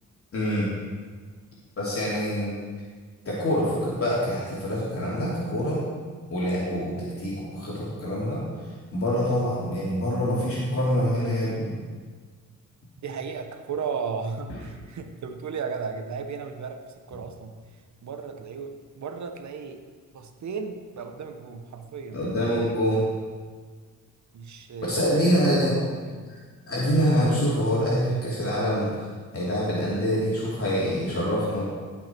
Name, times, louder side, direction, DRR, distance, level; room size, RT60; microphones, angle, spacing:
voice 1, 0.3-0.7 1.8-2.6 3.2-5.8 6.3-8.4 8.9-11.7 14.5-14.6 22.1-23.0 24.8-25.7 26.7-29.0 29.3-31.6, equal, 45° left, -7 dB, 3.0 m, -25 dB
voice 2, 13.0-17.6 18.0-19.8 20.1-22.2 24.3-26.3, right 5 dB, 60° right, 6 dB, 1.1 m, -35 dB
16.5 x 5.8 x 4.6 m, 1.5 s
cardioid pair, 100°, 33 cm